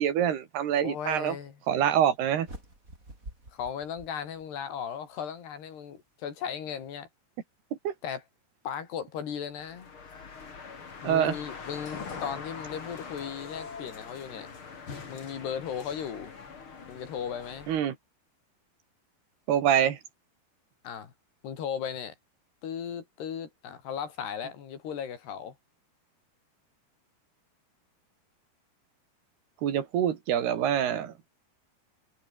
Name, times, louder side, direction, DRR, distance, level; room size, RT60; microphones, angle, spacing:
voice 1, 0.0-1.4 1.7-2.5 7.8-7.9 11.0-11.4 17.7-17.9 19.5-20.0 29.6-31.1, right 9 dB, 80° right, 4.4 m, -25 dB
voice 2, 0.8-1.6 3.5-7.1 8.0-8.2 8.7-9.9 11.0-14.5 15.1-16.3 16.9-17.7 20.8-21.1 21.4-22.2 22.6-25.6, left 8 dB, 85° left, 5.5 m, -36 dB
sound 1, 2.4-4.8, right 2 dB, 20° right, 7.7 m, -47 dB
sound 2, 9.6-17.8, left 5 dB, 35° left, 3.4 m, -43 dB
omnidirectional pair, 4.6 m